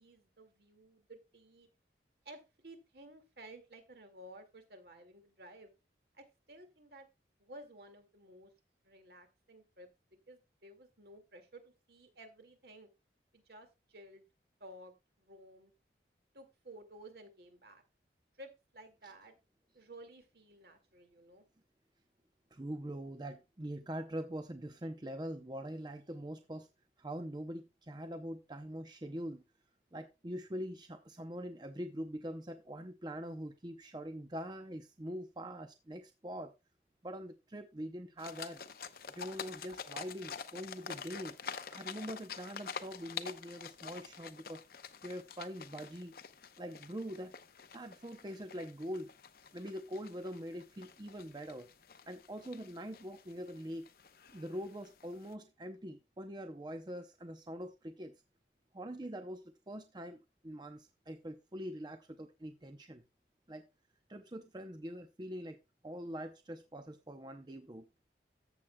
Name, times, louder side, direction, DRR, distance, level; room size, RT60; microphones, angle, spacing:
voice 1, 0.0-1.7 2.3-5.7 6.1-7.1 7.4-8.5 8.8-9.9 10.3-12.9 13.3-14.2 14.6-14.9 15.2-15.7 16.3-17.8 18.4-19.3 19.7-21.4, right 1 dB, 60° right, 6 dB, 2.0 m, -54 dB
voice 2, 22.5-26.7 27.0-29.4 29.9-36.5 37.0-38.6 39.1-41.4 41.7-44.6 45.0-46.1 46.6-47.3 47.7-49.1 49.5-51.7 52.1-53.9 54.3-58.1 58.7-63.0 63.5-63.6 64.1-65.6 65.8-67.9, equal, 25° right, 7 dB, 0.6 m, -43 dB
sound 1, 38.2-55.3, left 6 dB, 55° left, 0.7 m, -48 dB
14.0 x 7.4 x 2.2 m, 0.25 s
head